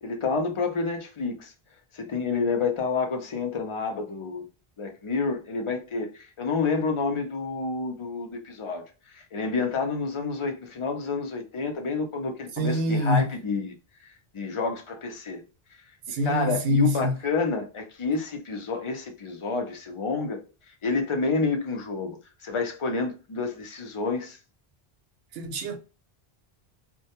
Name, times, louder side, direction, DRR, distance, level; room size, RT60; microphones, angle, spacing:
voice 1, 0.0-1.5 1.9-4.4 4.8-13.7 14.0-15.4 16.2-20.4 20.8-22.2 22.4-24.4, left 4 dB, 40° left, 0.5 m, -29 dB
voice 2, 12.6-13.3 16.1-17.1 25.3-25.8, left 1 dB, 75° right, 0.8 m, -25 dB
2.2 x 2.1 x 2.8 m
omnidirectional pair, 1.0 m